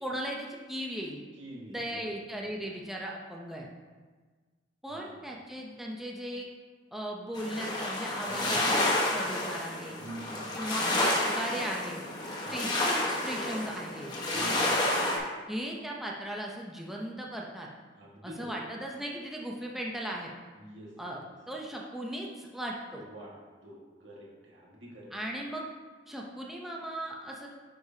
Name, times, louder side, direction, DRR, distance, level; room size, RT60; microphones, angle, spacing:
voice 1, 0.0-1.2 1.7-3.7 4.8-6.5 6.9-10.0 10.5-12.0 12.5-14.1 15.5-17.7 18.2-20.3 21.0-23.1 25.1-25.6 26.1-27.5, right 1 dB, ahead, -2 dB, 0.6 m, -37 dB
voice 2, 1.4-2.1 4.9-5.2 8.3-8.6 10.0-10.8 12.4-12.6 14.3-15.2 18.0-18.5 20.6-21.1 23.0-23.3 23.6-25.1, right 1 dB, 85° right, -4 dB, 1.8 m, -46 dB
sound 1, 7.3-15.2, left 1 dB, 25° left, 1.2 m, -30 dB
9.6 x 4.8 x 2.8 m, 1.4 s
head